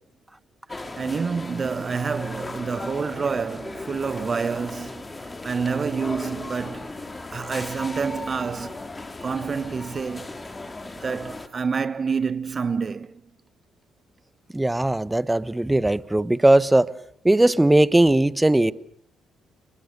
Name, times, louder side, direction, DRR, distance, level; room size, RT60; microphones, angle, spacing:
sound 1, 0.7-11.5, left 2 dB, 25° left, 3.1 m, -37 dB
voice 1, 0.7-8.9 9.2-10.3 11.0-13.2, right 5 dB, 40° right, 1.1 m, -28 dB
voice 2, 14.5-16.9 17.2-18.7, right 1 dB, 15° right, 1.2 m, -19 dB
29.0 x 23.0 x 6.7 m
hypercardioid pair, 50°, 0 cm